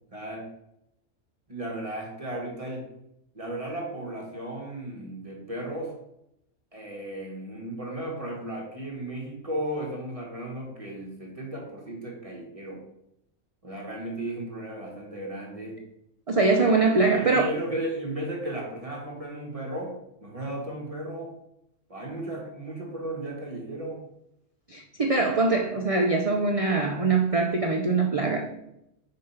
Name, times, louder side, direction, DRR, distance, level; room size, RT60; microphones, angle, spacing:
voice 1, 0.1-0.5 1.5-2.9 3.3-5.9 6.7-12.8 13.6-15.8 16.3-19.9 20.2-21.3 21.9-24.0, right 1 dB, 25° right, -2 dB, 1.5 m, -35 dB
voice 2, 16.3-17.5 24.7-28.5, right 3 dB, 45° right, 2 dB, 0.4 m, -23 dB
5.1 x 4.8 x 5.6 m, 0.82 s
omnidirectional pair, 1.5 m